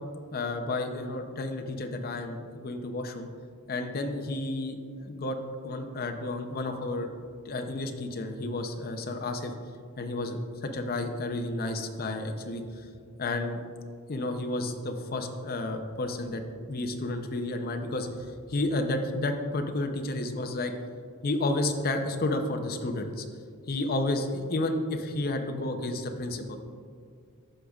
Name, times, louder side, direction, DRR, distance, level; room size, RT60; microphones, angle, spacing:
voice 1, 0.3-3.3 3.7-5.4 5.6-7.1 7.4-9.5 10.0-10.4 10.7-12.9 13.2-13.6 14.1-20.7 21.2-23.2 23.7-26.6, left 2 dB, 45° left, 5 dB, 0.6 m, -31 dB
13.0 x 5.0 x 2.4 m, 2.2 s
head